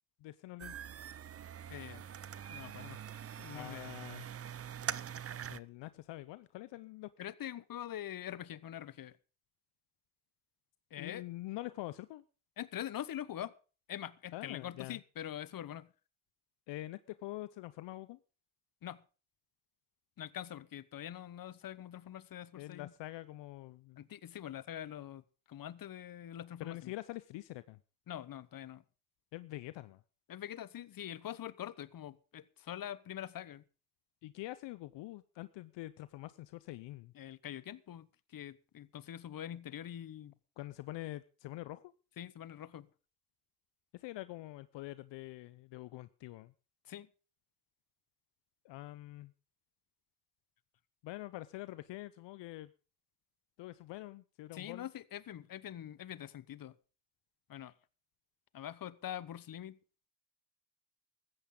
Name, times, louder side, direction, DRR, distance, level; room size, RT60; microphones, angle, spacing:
voice 1, 0.2-0.8 3.5-4.3 5.5-7.1 11.0-12.2 14.3-15.0 16.7-18.2 22.6-24.0 26.6-27.8 29.3-30.0 34.2-37.1 40.6-41.9 43.9-46.5 48.6-49.3 51.0-52.7 53.6-54.9, left 17 dB, 70° left, 15 dB, 0.7 m, -45 dB
sound 1, 0.6-5.6, right 9 dB, 30° right, 0.6 m, -43 dB
voice 2, 1.7-2.0 2.5-3.9 7.2-9.1 10.9-11.2 12.6-13.5 13.9-15.9 18.8-19.0 20.2-22.9 24.0-25.2 25.5-26.9 28.1-28.8 30.3-33.6 37.1-40.3 42.2-42.9 46.9-47.1 54.5-56.7 57.5-57.7 58.5-59.8, left 11 dB, 50° left, 18 dB, 1.0 m, -44 dB
15.5 x 13.5 x 3.8 m, 0.35 s
supercardioid pair, 70°, 44 cm